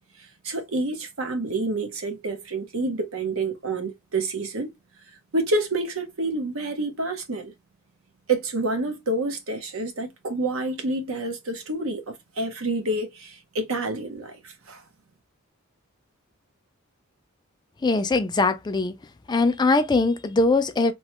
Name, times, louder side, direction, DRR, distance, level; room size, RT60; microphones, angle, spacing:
voice 1, 0.2-4.7 5.3-7.5 8.3-14.8, right 2 dB, 70° right, 0.8 m, -28 dB
voice 2, 17.8-19.0 19.3-20.9, left 3 dB, 20° left, 0.3 m, -21 dB
3.0 x 2.1 x 2.9 m
head